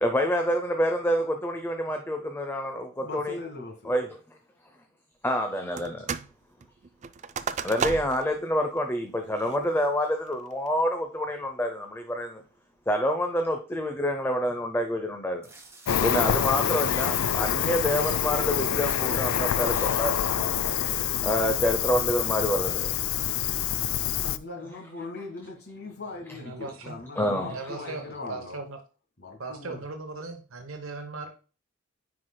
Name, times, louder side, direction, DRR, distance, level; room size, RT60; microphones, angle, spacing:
voice 1, 0.0-3.4 3.9-4.1 5.2-6.1 7.6-12.4 12.9-15.5 16.0-20.5 21.2-22.9 27.2-27.5, equal, 10° left, 5 dB, 0.6 m, -27 dB
voice 2, 3.0-4.0 24.2-28.6 29.2-29.8, left 3 dB, 50° left, 2 dB, 1.7 m, -40 dB
sound 1, 5.8-6.3 6.6-8.3 8.8-8.9 9.4-9.8 10.3-10.7, right 6 dB, 35° right, 0.3 m, -33 dB
sound 2, 15.4-16.2 16.9-17.2 17.9-18.2 18.9-19.1 19.8-20.2 20.9-21.0, right 3 dB, 10° right, 1.2 m, -46 dB
Cricket, 15.9-24.4, left 10 dB, 80° left, 0.4 m, -26 dB
voice 3, 26.3-27.0 27.4-28.8 29.4-31.3, right 3 dB, 75° right, 5 dB, 0.9 m, -38 dB
9.8 x 4.8 x 2.2 m, 0.36 s
head